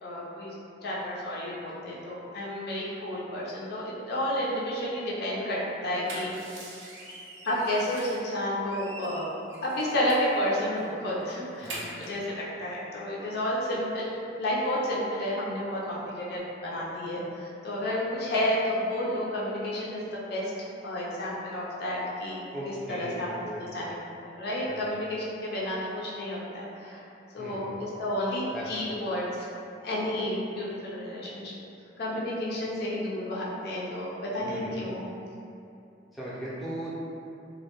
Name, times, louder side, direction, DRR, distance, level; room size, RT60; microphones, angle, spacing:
voice 1, 0.0-0.5 0.8-6.3 7.4-9.3 9.6-11.7 12.0-22.4 22.9-23.3 23.7-24.0 24.4-27.0 27.3-29.5 29.8-31.5 32.0-35.0, left 1 dB, 60° left, -6 dB, 0.4 m, -31 dB
sound 1, 5.8-8.3 8.6-10.4 10.8-10.9 11.2-12.3, right 1 dB, 80° right, 0.5 m, -43 dB
voice 2, 22.5-24.1 24.6-24.9 27.4-27.9 28.5-28.9 34.4-34.9 36.1-37.0, equal, ahead, -11 dB, 0.5 m, -39 dB
2.1 x 2.1 x 2.8 m, 2.7 s
head